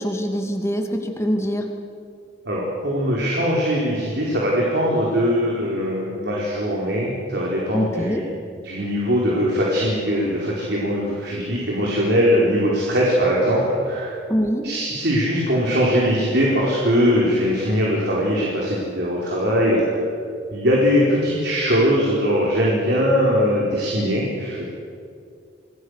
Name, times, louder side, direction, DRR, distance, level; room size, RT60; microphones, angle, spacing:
voice 1, 0.0-1.7 7.7-8.2 14.3-14.7, equal, 15° left, 4 dB, 2.4 m, -23 dB
voice 2, 2.4-8.3 8.6-14.1 14.6-20.0 20.5-24.6, equal, 60° right, -4 dB, 4.7 m, -21 dB
29.0 x 21.5 x 6.6 m, 2.3 s
head